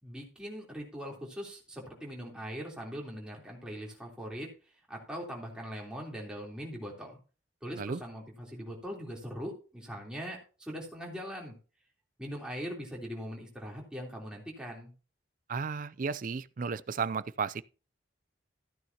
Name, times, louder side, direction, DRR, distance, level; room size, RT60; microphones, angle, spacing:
voice 1, 0.0-4.6 4.9-7.2 7.6-11.5 12.2-14.9, equal, 5° right, 3.5 m, -41 dB
voice 2, 15.5-17.6, right 5 dB, 45° right, 0.4 m, -34 dB
14.5 x 9.3 x 2.9 m
head